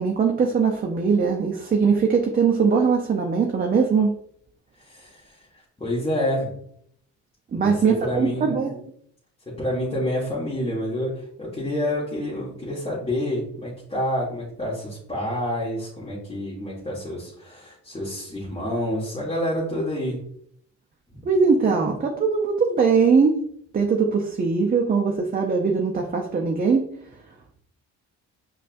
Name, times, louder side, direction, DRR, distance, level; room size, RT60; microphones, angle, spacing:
voice 1, 0.0-4.2 7.5-8.8 21.2-23.4 23.7-26.9, right 5 dB, 30° right, 0 dB, 0.5 m, -21 dB
voice 2, 4.8-6.5 7.5-8.6 9.5-20.2 21.1-21.3, left 1 dB, 20° left, -9 dB, 1.4 m, -28 dB
5.2 x 2.4 x 2.5 m, 0.66 s
cardioid pair, 90°, 30 cm